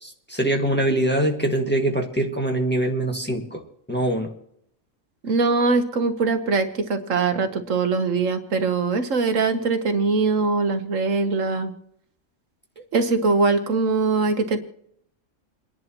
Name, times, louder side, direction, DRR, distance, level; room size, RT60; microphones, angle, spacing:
voice 1, 0.0-3.6 3.9-4.3, right 1 dB, 10° left, 2 dB, 1.6 m, -23 dB
voice 2, 5.2-11.7 12.9-14.6, right 4 dB, 75° right, 8 dB, 1.5 m, -22 dB
29.0 x 11.0 x 3.0 m, 0.72 s
omnidirectional pair, 1.4 m